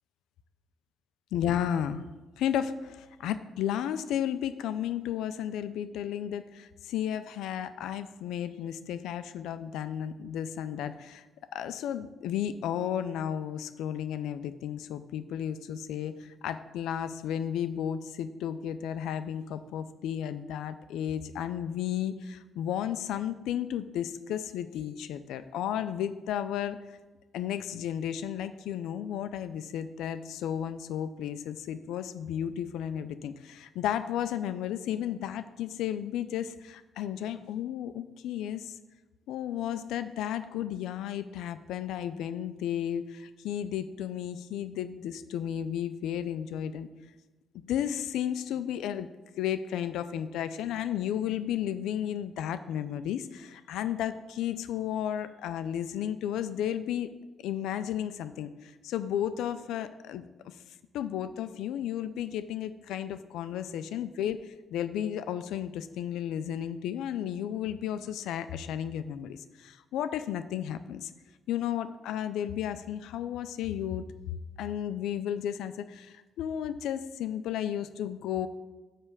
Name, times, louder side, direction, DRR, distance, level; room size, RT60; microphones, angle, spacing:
voice 1, 1.3-2.0 2.4-11.3 11.5-26.8 27.3-38.8 39.3-46.9 47.5-49.1 49.4-57.1 57.4-60.6 60.9-71.1 71.5-78.5, left 10 dB, 90° left, 12 dB, 0.4 m, -33 dB
9.5 x 3.3 x 6.8 m, 1.2 s
cardioid pair, 80°, 0 cm